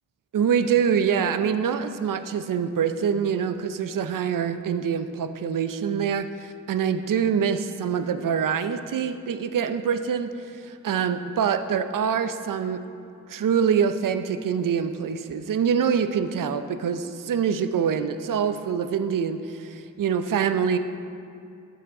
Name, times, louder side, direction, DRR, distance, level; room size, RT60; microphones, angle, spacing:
voice 1, 0.3-12.8 13.3-20.8, right 7 dB, 80° right, 10 dB, 0.6 m, -25 dB
13.0 x 6.2 x 4.8 m, 2.6 s
cardioid pair, 45°, 32 cm